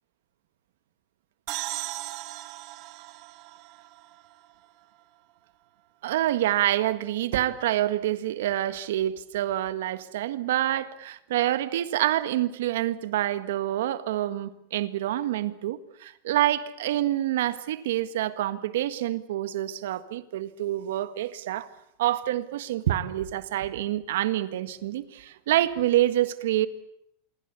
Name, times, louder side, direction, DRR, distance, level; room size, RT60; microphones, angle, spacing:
sound 1, 1.5-5.0, right 18 dB, 50° right, 1.4 m, -38 dB
voice 1, 6.0-21.7 22.0-26.7, right 13 dB, 80° right, 13 dB, 1.7 m, -27 dB
26.5 x 23.0 x 8.4 m, 0.76 s
supercardioid pair, 125°, 0 cm